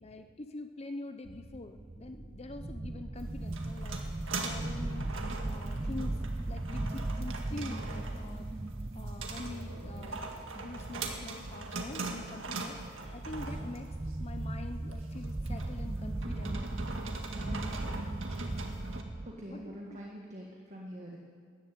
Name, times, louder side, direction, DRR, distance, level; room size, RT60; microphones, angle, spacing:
voice 1, 0.0-5.1 5.5-6.2 6.5-8.5 8.9-10.2 10.5-16.8 17.4-17.9 19.5-20.0, left 2 dB, 30° left, 7 dB, 0.7 m, -45 dB
sound 1, 1.3-19.3, right 2 dB, 15° right, 0.4 m, -38 dB
sound 2, 3.2-19.0, right 3 dB, 65° right, 1.8 m, -42 dB
voice 2, 19.2-21.2, equal, 35° right, -2 dB, 1.7 m, -45 dB
14.0 x 11.0 x 9.1 m, 2.3 s
head